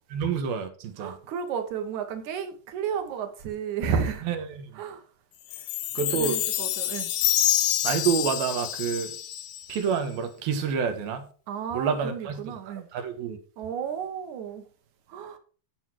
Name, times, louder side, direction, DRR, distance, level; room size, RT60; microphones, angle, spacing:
voice 1, 0.1-1.1 4.3-4.8 6.0-6.4 7.8-9.2 9.7-11.3 11.7-12.4 12.9-13.4, right 6 dB, 80° right, 3.2 m, -28 dB
voice 2, 1.0-4.3 4.7-5.0 6.0-7.1 11.5-12.9 13.6-14.6 15.1-15.4, right 7 dB, 60° right, 2.5 m, -32 dB
Chime, 5.5-10.0, left 13 dB, 80° left, 2.8 m, -27 dB
14.5 x 6.2 x 4.7 m
omnidirectional pair, 4.2 m